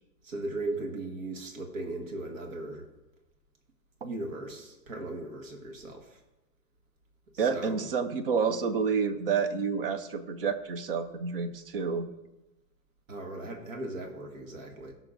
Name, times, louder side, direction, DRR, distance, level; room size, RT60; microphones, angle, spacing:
voice 1, 0.2-2.8 4.0-6.2 7.3-7.9 13.1-14.9, right 2 dB, 55° right, 2 dB, 1.7 m, -37 dB
voice 2, 7.4-12.1, right 5 dB, 40° right, 10 dB, 0.5 m, -29 dB
17.5 x 6.0 x 2.6 m, 1.0 s
hypercardioid pair, 170°, 48 cm